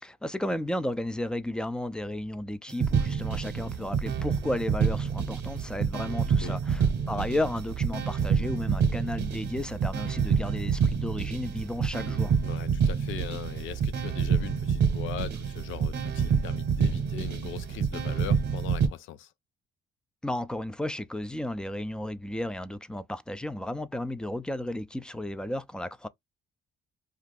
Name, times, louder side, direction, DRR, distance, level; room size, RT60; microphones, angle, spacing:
voice 1, 0.0-12.3 20.2-26.1, left 1 dB, 5° left, 0.3 m, -33 dB
sound 1, 2.7-18.9, right 6 dB, 60° right, 0.8 m, -28 dB
voice 2, 12.4-19.3, left 11 dB, 85° left, 0.4 m, -40 dB
2.7 x 2.4 x 3.4 m
cardioid pair, 90°, 20 cm